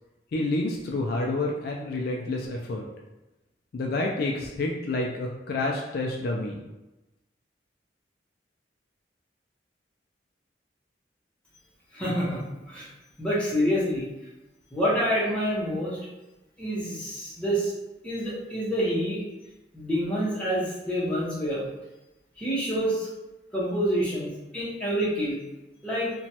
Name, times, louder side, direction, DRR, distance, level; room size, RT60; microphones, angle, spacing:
voice 1, 0.3-2.8 3.7-6.6, left 2 dB, 55° left, -1 dB, 0.3 m, -29 dB
voice 2, 11.9-12.9 13.2-14.1 14.7-16.0 16.6-17.7 18.0-19.2 19.7-21.7 22.4-23.1 23.5-25.4 25.8-26.1, equal, 5° left, -8 dB, 0.8 m, -27 dB
2.9 x 2.2 x 2.8 m, 1.0 s
head